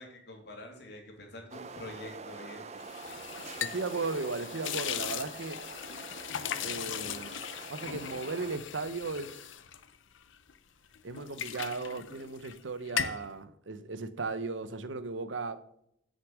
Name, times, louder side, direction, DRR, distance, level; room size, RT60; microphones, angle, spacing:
voice 1, 0.0-2.6, left 1 dB, 60° left, 2.8 m, -46 dB
sound 1, 1.5-8.6, right 4 dB, 35° right, 0.6 m, -46 dB
sound 2, 2.8-10.6 10.9-12.6 12.9-13.3, left 9 dB, 80° left, 0.7 m, -38 dB
voice 2, 3.6-5.6 6.6-7.3 7.7-9.4 11.0-15.6, right 3 dB, 75° right, 0.8 m, -36 dB
8.2 x 6.6 x 6.3 m
head